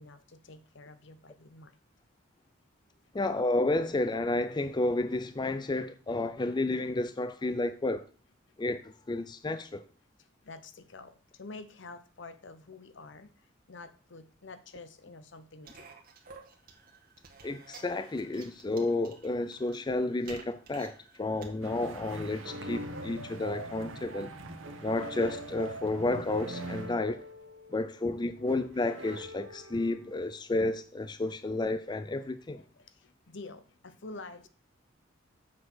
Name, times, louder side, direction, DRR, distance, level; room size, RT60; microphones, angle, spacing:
voice 1, 0.0-1.8 10.2-15.9 28.4-28.5 32.5-34.5, left 3 dB, 65° left, 0.9 m, -48 dB
voice 2, 3.1-8.1 8.6-9.8 17.4-24.3 24.8-27.2 27.7-32.6, left 2 dB, 20° left, 0.4 m, -31 dB
sound 1, 15.6-21.6, right 4 dB, 45° right, 1.8 m, -52 dB
sound 2, 21.6-26.8, right 2 dB, 85° right, 1.4 m, -46 dB
sound 3, 22.4-30.1, right 1 dB, 70° right, 1.6 m, -43 dB
7.5 x 6.2 x 6.1 m
head